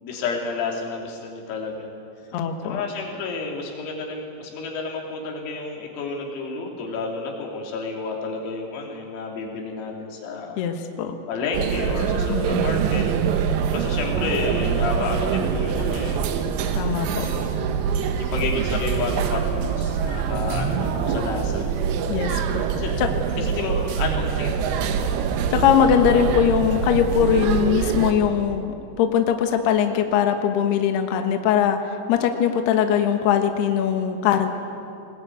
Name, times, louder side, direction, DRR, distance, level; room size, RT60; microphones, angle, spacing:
voice 1, 0.0-1.9 2.6-10.6 11.3-13.1 13.7-16.2 17.2-17.5 18.2-21.7 22.7-23.0 23.4-24.5, left 4 dB, 90° left, -1 dB, 5.9 m, -30 dB
voice 2, 2.3-2.8 10.6-11.2 12.3-12.9 16.7-17.3 22.1-22.4 23.0-23.1 25.5-31.8 32.1-34.5, left 8 dB, 65° left, 5 dB, 2.9 m, -21 dB
sound 1, 11.5-28.1, right 7 dB, 70° right, 3.1 m, -24 dB
sound 2, 12.4-16.5, right 10 dB, 90° right, 2.2 m, -31 dB
21.5 x 20.5 x 9.3 m, 2.5 s
omnidirectional pair, 5.9 m